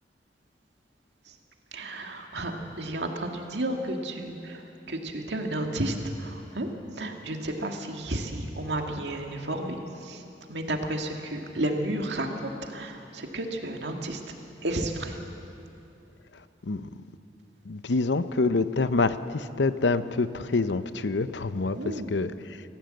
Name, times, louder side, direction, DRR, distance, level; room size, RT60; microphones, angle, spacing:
voice 1, 1.7-4.6 4.9-6.7 7.0-10.2 10.5-14.2 14.6-15.2 21.7-22.1, right 1 dB, 75° right, 3 dB, 2.1 m, -32 dB
voice 2, 17.6-22.3, left 3 dB, 85° left, 13 dB, 0.7 m, -26 dB
27.0 x 15.0 x 7.8 m, 2.8 s
head